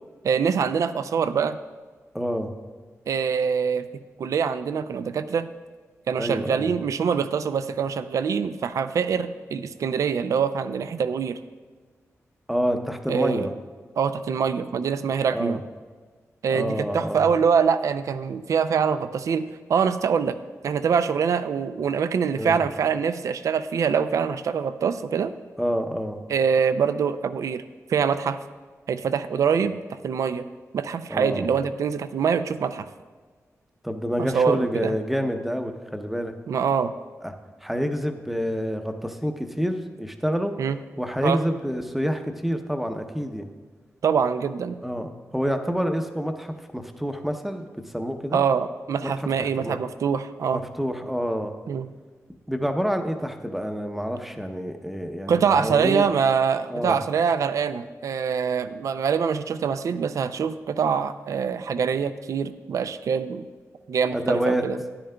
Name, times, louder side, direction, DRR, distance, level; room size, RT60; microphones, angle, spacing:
voice 1, 0.2-1.6 3.1-3.9 4.2-5.5 6.1-11.4 13.1-13.5 14.0-15.6 16.4-20.4 20.6-25.3 26.3-27.6 27.9-28.4 28.9-30.4 30.7-32.9 34.2-34.9 36.5-36.9 40.6-40.8 41.2-41.4 44.0-44.8 48.3-50.6 51.7-51.9 55.3-63.5 63.9-64.8, right 6 dB, 75° right, 12 dB, 0.4 m, -24 dB
voice 2, 2.1-2.5 6.2-6.7 12.5-13.5 15.3-15.6 16.5-17.3 22.4-22.6 25.6-26.2 31.1-31.6 33.8-36.3 37.2-37.3 37.6-40.5 41.0-43.5 44.8-47.6 47.9-48.4 49.0-49.1 49.4-49.8 50.5-51.5 52.5-56.1 56.7-57.0 64.1-64.6, equal, 5° right, 6 dB, 0.6 m, -27 dB
12.5 x 10.5 x 2.2 m, 1.4 s
wide cardioid pair, 130°, 6 cm